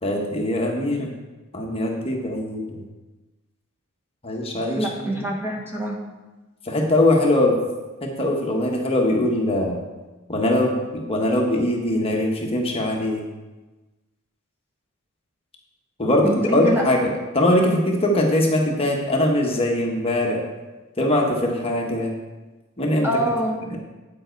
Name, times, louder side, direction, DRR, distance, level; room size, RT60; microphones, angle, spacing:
voice 1, 0.0-1.1 1.5-2.8 4.2-5.1 6.6-7.6 8.0-9.8 10.3-13.2 16.0-20.4 21.0-22.1 22.8-23.1 23.7-23.8, left 1 dB, 25° left, 0 dB, 1.2 m, -21 dB
voice 2, 4.8-6.0 16.2-16.8 23.0-23.6, right 1 dB, 10° right, -2 dB, 1.2 m, -25 dB
9.2 x 7.6 x 4.6 m, 1.2 s
head